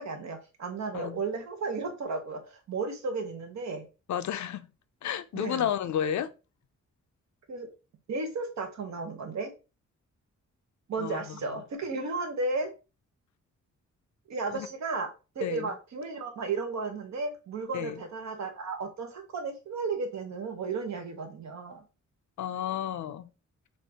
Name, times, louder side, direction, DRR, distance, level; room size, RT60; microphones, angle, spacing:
voice 1, 0.0-3.9 5.3-5.7 7.5-7.7 8.1-9.5 10.9-12.7 14.3-15.1 15.3-21.8, right 3 dB, 65° right, 1.1 m, -34 dB
voice 2, 4.1-4.7 5.0-6.3 11.0-11.2 14.5-14.7 15.4-15.7 17.7-18.0 22.4-23.3, left 9 dB, 75° left, 0.5 m, -31 dB
6.5 x 2.6 x 2.8 m
wide cardioid pair, 160°, 30 cm